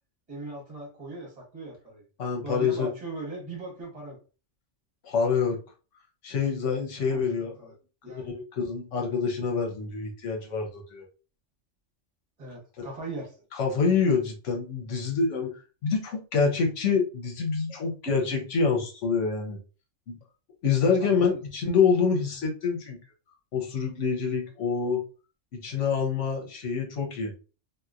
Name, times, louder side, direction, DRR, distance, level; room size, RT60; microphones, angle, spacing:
voice 1, 0.3-2.0 2.4-4.2 7.1-7.7 8.0-8.3 12.4-13.4 13.8-14.0 20.8-21.4, right 2 dB, 30° right, 1.2 m, -39 dB
voice 2, 2.2-2.9 5.0-5.6 6.2-7.5 8.1-11.1 12.8-12.9 13.5-15.5 15.8-19.6 20.1-20.2 20.6-23.0 23.5-25.0 25.6-27.3, left 5 dB, 75° left, 1.2 m, -26 dB
2.9 x 2.6 x 2.4 m
omnidirectional pair, 1.3 m